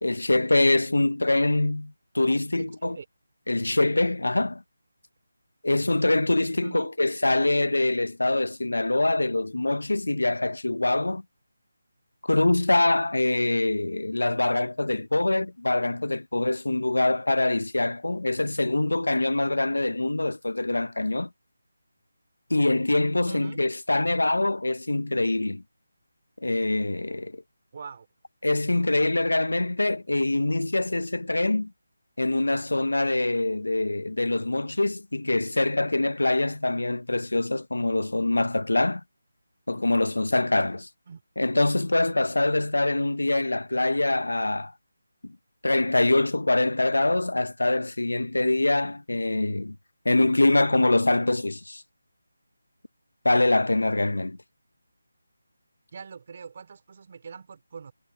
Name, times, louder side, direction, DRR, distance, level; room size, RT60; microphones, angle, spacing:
voice 1, 0.0-3.0 3.5-4.6 5.6-11.2 12.2-21.3 22.5-25.6 26.4-27.4 28.4-31.7 32.2-39.0 39.7-40.9 41.4-44.7 45.2-45.4 45.6-49.8 50.0-51.8 53.2-54.4, left 2 dB, 85° left, 1.1 m, -24 dB
voice 2, 2.6-3.1 6.6-6.9 23.2-23.6 27.7-28.1 41.1-41.2 55.9-57.9, right 5 dB, 40° right, 3.0 m, -42 dB
figure-of-eight pair, 165°, 0 cm